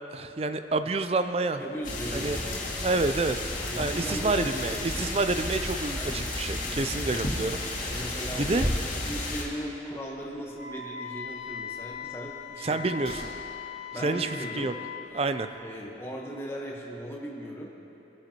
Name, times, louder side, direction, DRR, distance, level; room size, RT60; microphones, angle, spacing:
voice 1, 0.1-1.6 2.1-2.4 2.8-7.9 8.4-8.7 12.6-13.3 14.0-14.7 15.1-15.5, right 3 dB, 35° right, 9 dB, 0.4 m, -28 dB
sound 1, 0.7-1.3 1.6-4.3 4.7-4.8 5.1-5.2 6.9-10.8 11.1-13.5 13.8-13.9, right 1 dB, 50° right, 3.3 m, -46 dB
voice 2, 1.6-2.6 3.7-5.1 6.0-7.1 7.9-8.7 9.0-12.8 13.9-14.7 15.6-17.7, equal, 15° left, -3 dB, 1.1 m, -38 dB
sound 2, 1.8-9.4, left 1 dB, 45° left, 2.3 m, -32 dB
Wind instrument woodwind instrument, 10.5-15.1, left 7 dB, 70° left, 1.2 m, -39 dB
21.5 x 10.5 x 2.9 m, 3.0 s
head